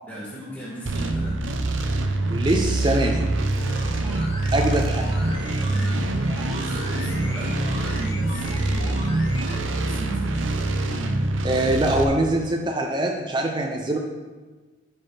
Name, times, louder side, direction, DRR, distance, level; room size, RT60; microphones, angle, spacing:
voice 1, 0.0-1.4 5.6-6.2 6.5-10.4, equal, 10° left, -8 dB, 1.7 m, -37 dB
sound 1, 0.9-12.1, right 2 dB, 80° right, 0.7 m, -25 dB
voice 2, 2.3-3.3 4.5-5.1 11.4-14.0, right 1 dB, 25° right, 2 dB, 0.5 m, -23 dB
sound 2, 3.6-9.6 9.9-10.0, left 1 dB, 75° left, 1.7 m, -39 dB
10.5 x 5.9 x 3.3 m, 1.3 s
head